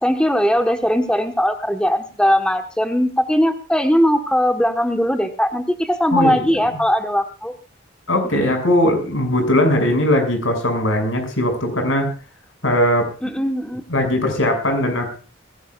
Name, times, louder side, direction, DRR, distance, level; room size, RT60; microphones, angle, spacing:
voice 1, 0.0-7.6 8.2-8.5 13.2-13.8, equal, 5° left, 5 dB, 1.2 m, -19 dB
voice 2, 6.1-6.5 8.1-12.1 12.6-13.1 13.9-15.1, left 1 dB, 90° left, 4 dB, 6.2 m, -19 dB
21.5 x 16.5 x 2.4 m, 0.36 s
head